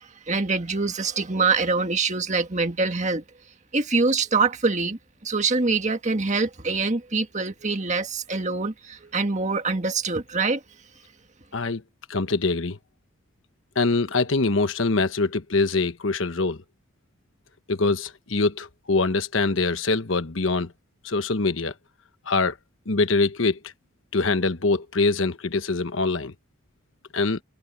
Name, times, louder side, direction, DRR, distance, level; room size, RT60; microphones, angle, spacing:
voice 1, 0.0-3.2 3.7-10.6, right 4 dB, 35° right, 1.7 m, -25 dB
voice 2, 12.1-12.8 13.7-16.6 17.7-20.7 21.0-21.7 22.3-22.6 22.9-23.6 24.1-26.3 27.1-27.4, left 3 dB, 70° left, 1.2 m, -23 dB
head